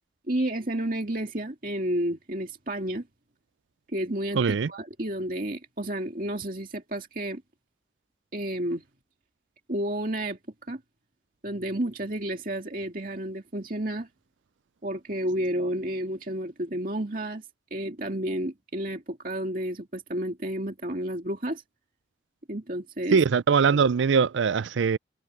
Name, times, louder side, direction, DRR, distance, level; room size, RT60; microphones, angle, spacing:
voice 1, 0.3-3.1 3.9-7.4 8.3-8.8 9.7-10.4 10.7-10.8 11.4-14.1 14.8-17.4 17.7-21.6 22.5-23.2, right 1 dB, 45° right, 2.3 m, -31 dB
voice 2, 4.3-4.7 23.1-25.0, right 5 dB, 85° right, 0.4 m, -21 dB
head